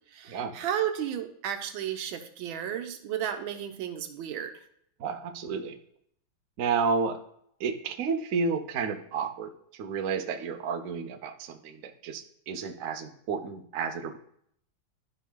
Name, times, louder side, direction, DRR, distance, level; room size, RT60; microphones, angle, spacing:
voice 1, 0.1-4.5, right 10 dB, 80° right, 7 dB, 1.5 m, -33 dB
voice 2, 5.0-5.8 6.6-7.2 7.6-9.5 9.8-14.2, right 5 dB, 60° right, 5 dB, 0.8 m, -31 dB
12.0 x 5.5 x 2.2 m, 0.68 s
omnidirectional pair, 2.2 m